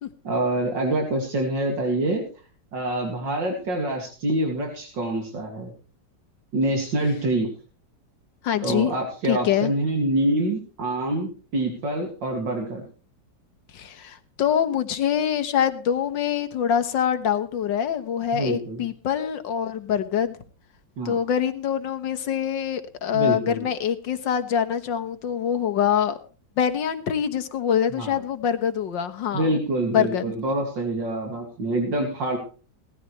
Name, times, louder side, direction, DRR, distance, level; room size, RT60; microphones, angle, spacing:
voice 1, 0.2-2.2 2.7-5.7 6.5-7.5 8.6-12.8 18.3-18.8 21.0-21.2 23.1-23.7 28.0-28.2 29.3-32.4, right 1 dB, 75° right, 2 dB, 3.1 m, -26 dB
voice 2, 8.4-9.0 9.3-9.7 13.7-20.4 21.1-26.2 26.6-29.5 29.9-30.2, left 9 dB, 85° left, 10 dB, 2.0 m, -24 dB
18.0 x 13.5 x 3.2 m, 0.36 s
omnidirectional pair, 2.0 m